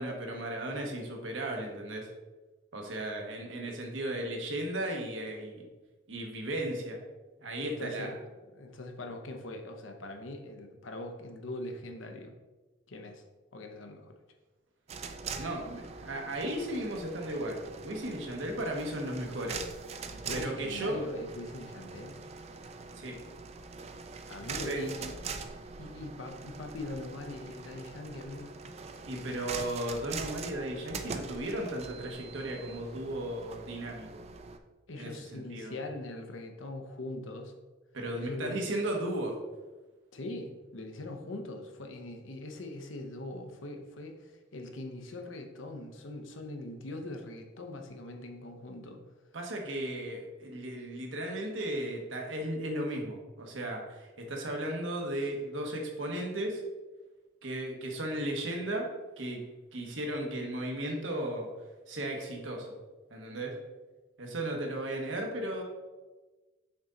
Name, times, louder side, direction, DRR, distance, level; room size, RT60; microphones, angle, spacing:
voice 1, 0.0-2.1 2.7-5.7 6.1-7.0 7.4-8.2 15.4-19.6 20.3-21.1 22.9-23.2 24.6-24.9 29.1-34.2 34.9-35.8 37.9-39.4 49.3-56.6 57.4-58.9 59.2-61.5 61.9-62.8 63.1-63.6 64.2-65.6, right 1 dB, 80° right, 1 dB, 1.2 m, -35 dB
voice 2, 7.6-8.1 8.5-12.3 12.9-13.2 13.5-14.1 20.1-22.2 24.3-25.2 25.8-28.6 34.9-37.5 38.1-38.7 40.1-49.0, left 2 dB, 85° left, 4 dB, 0.8 m, -42 dB
sound 1, 14.9-34.6, right 5 dB, 35° right, 0.4 m, -43 dB
6.1 x 4.1 x 3.8 m, 1.2 s
head